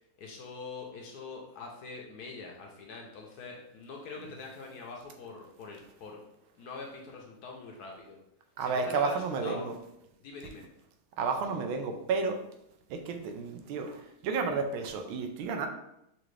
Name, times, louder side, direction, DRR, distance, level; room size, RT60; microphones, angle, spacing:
voice 1, 0.2-6.2 6.6-8.2 8.6-9.7 10.2-10.6 11.4-11.5, left 4 dB, 65° left, 0 dB, 1.0 m, -44 dB
voice 2, 8.6-9.7 11.2-12.4 12.9-15.7, right 4 dB, 90° right, 5 dB, 1.5 m, -31 dB
6.0 x 2.5 x 3.1 m, 0.80 s
omnidirectional pair, 2.2 m